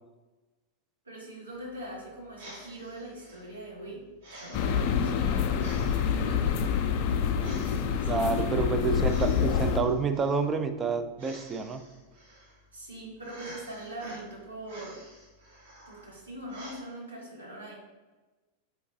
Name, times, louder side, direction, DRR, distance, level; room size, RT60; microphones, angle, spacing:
voice 1, 1.0-4.0 4.4-5.6 6.1-6.6 8.0-8.9 12.7-15.0 15.9-17.7, right 1 dB, 80° right, -2 dB, 1.2 m, -42 dB
sound 1, 1.5-16.8, right 1 dB, 60° right, 1.4 m, -50 dB
sound 2, 4.5-9.8, left 7 dB, 45° left, 0.4 m, -27 dB
voice 2, 8.1-11.8, right 4 dB, 20° right, 9 dB, 0.4 m, -28 dB
3.8 x 3.5 x 3.7 m, 1.2 s
figure-of-eight pair, 90°, 0 cm